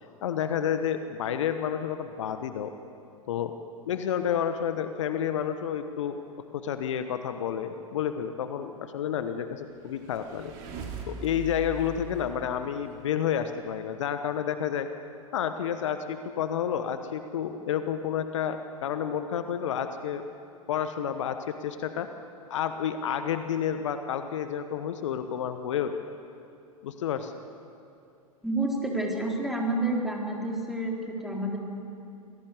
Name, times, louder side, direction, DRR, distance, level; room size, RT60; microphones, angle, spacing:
voice 1, 0.2-2.7 3.3-3.5 3.9-6.2 6.5-10.5 11.1-14.9 15.3-20.2 20.7-22.1 22.5-25.9 26.8-27.3, left 9 dB, 55° left, 9 dB, 1.2 m, -30 dB
sound 1, 9.7-13.3, right 4 dB, 45° right, 3.3 m, -41 dB
voice 2, 28.4-31.6, right 2 dB, ahead, -1 dB, 3.7 m, -29 dB
26.0 x 17.5 x 8.2 m, 2.6 s
figure-of-eight pair, 95°, 18 cm